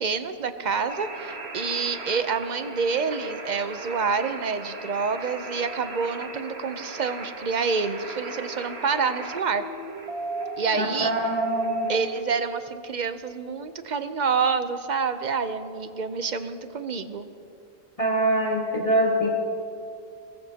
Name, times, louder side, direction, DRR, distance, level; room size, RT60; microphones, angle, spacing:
voice 1, 0.0-9.6 10.6-11.1 11.9-17.3, right 5 dB, 45° right, 10 dB, 0.8 m, -27 dB
sound 1, 0.9-12.2, right 2 dB, 70° right, 1.6 m, -36 dB
voice 2, 10.7-11.9 18.0-19.3, right 1 dB, 30° left, -3 dB, 1.6 m, -24 dB
22.5 x 20.0 x 2.9 m, 2.7 s
omnidirectional pair, 1.1 m